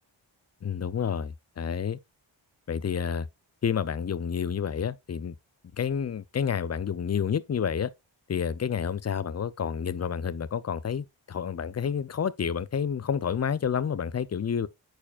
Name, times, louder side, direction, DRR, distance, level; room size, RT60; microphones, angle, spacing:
voice 1, 0.6-2.0 2.7-3.3 3.6-5.3 5.8-7.9 8.3-14.7, left 7 dB, 35° left, 0.5 m, -29 dB
8.6 x 4.8 x 2.4 m
cardioid pair, 45°, 48 cm